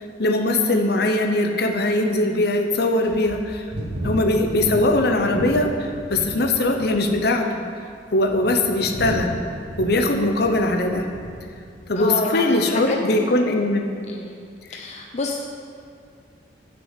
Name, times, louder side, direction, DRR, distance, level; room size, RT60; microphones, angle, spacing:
voice 1, 0.2-3.6 4.0-7.5 8.1-9.4 9.8-11.1 11.9-13.9 14.7-14.8, left 2 dB, 60° left, 4 dB, 0.8 m, -21 dB
sound 1, 0.9-1.0 1.6-1.7 2.3-2.4 3.0-6.4 6.7-7.2 7.9-11.4 11.7-12.0, equal, 60° right, 1.2 m, -33 dB
voice 2, 12.0-13.3 14.1-14.3 14.7-15.4, left 2 dB, 40° left, 2 dB, 0.5 m, -28 dB
6.4 x 6.0 x 7.4 m, 2.2 s
head